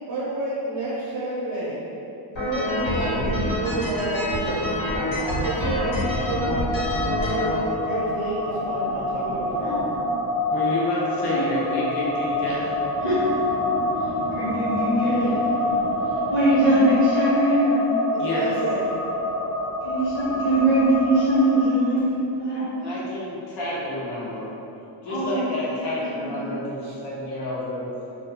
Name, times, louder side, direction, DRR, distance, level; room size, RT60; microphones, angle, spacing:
voice 1, 0.1-1.8 2.4-4.7 5.1-6.7 7.2-9.9 14.8-15.3 18.1-19.0 26.8-26.9, right 2 dB, 50° right, -9 dB, 0.7 m, -30 dB
sound 1, 2.3-7.5, left 1 dB, 80° left, 1.4 m, -26 dB
sound 2, 5.2-21.6, left 1 dB, ahead, 0.3 m, -27 dB
voice 2, 10.5-12.8 18.2-18.5 22.7-24.5 25.0-27.9, left 1 dB, 55° left, -6 dB, 0.8 m, -29 dB
voice 3, 14.3-15.2 16.3-17.8 19.8-22.1 22.4-22.6 25.0-25.4 25.9-26.6, right 1 dB, 25° left, -12 dB, 1.1 m, -21 dB
2.5 x 2.3 x 3.5 m, 2.8 s
cardioid pair, 180°, 47 cm